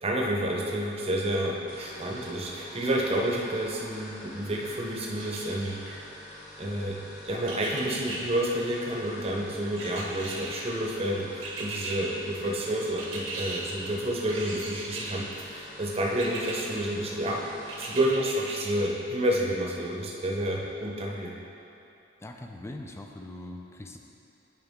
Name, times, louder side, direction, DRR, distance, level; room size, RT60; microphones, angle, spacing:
voice 1, 0.0-6.1 6.6-17.4 17.8-21.3, right 1 dB, 30° right, -2 dB, 0.8 m, -30 dB
sound 1, 1.7-18.1, left 1 dB, 40° left, 1.4 m, -46 dB
sound 2, 5.2-5.9 7.5-8.2 9.8-10.7 11.4-12.0 13.0-13.6 14.3-15.2 16.2-16.6 17.7-18.5 19.0-19.1, right 3 dB, 85° right, 1.1 m, -37 dB
voice 2, 22.2-24.0, left 1 dB, 15° left, 3 dB, 0.4 m, -41 dB
8.1 x 4.8 x 3.6 m, 2.8 s
head